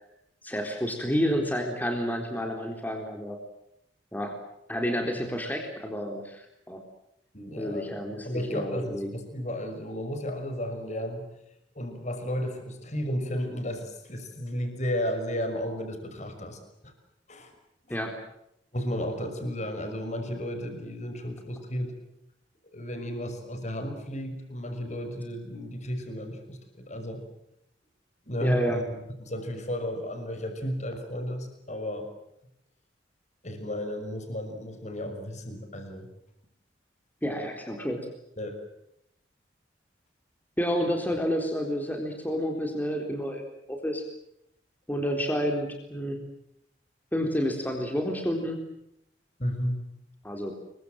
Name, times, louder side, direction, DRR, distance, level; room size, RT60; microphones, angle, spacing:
voice 1, 0.4-3.4 4.1-4.4 4.7-6.8 7.6-9.1 17.9-18.1 28.4-28.8 37.2-38.0 40.6-44.0 44.9-46.2 47.1-48.6 50.2-50.5, equal, 10° left, 2 dB, 3.9 m, -30 dB
voice 2, 7.3-8.0 8.2-11.3 11.7-16.9 17.3-17.5 17.9-18.0 18.7-21.9 22.7-27.3 28.3-32.1 33.4-36.1 38.4-38.6 49.4-49.8, equal, 40° left, 7 dB, 6.0 m, -33 dB
29.5 x 23.5 x 7.7 m, 0.78 s
head